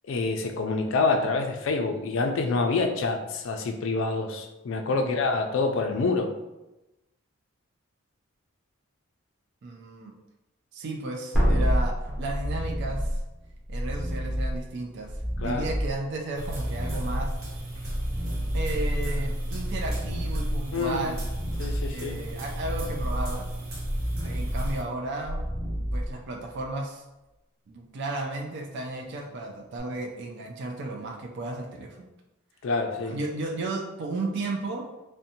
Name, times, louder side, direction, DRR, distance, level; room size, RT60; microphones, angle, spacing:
voice 1, 0.1-6.3 15.4-15.7 20.7-21.1 21.6-22.2 32.6-33.2, left 3 dB, 60° left, 4 dB, 0.4 m, -27 dB
voice 2, 4.9-5.2 9.6-10.1 10.7-13.2 13.7-15.1 15.4-17.3 18.5-21.2 21.9-23.5 24.2-25.5 25.9-27.0 27.7-32.1 33.1-34.9, right 2 dB, 55° right, 1 dB, 0.3 m, -34 dB
sound 1, 11.3-26.6 29.8-29.9, equal, ahead, 0.7 m, -29 dB
sound 2, 16.3-24.8, right 1 dB, 70° right, 0.7 m, -36 dB
2.6 x 2.1 x 2.7 m, 0.98 s
head